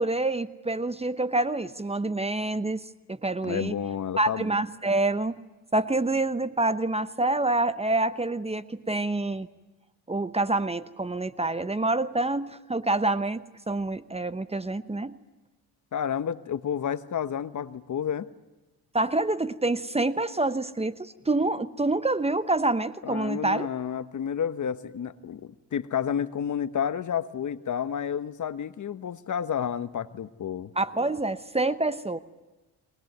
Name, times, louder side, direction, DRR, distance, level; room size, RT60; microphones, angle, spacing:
voice 1, 0.0-2.8 3.1-3.7 4.2-5.4 5.7-9.5 10.1-13.4 13.7-15.2 18.9-23.7 30.8-32.2, right 2 dB, 15° right, 14 dB, 1.0 m, -27 dB
voice 2, 3.4-4.5 15.9-18.3 23.0-30.7, left 8 dB, 50° left, 13 dB, 1.2 m, -30 dB
23.0 x 20.0 x 9.4 m, 1.1 s
cardioid pair, 80°, 40 cm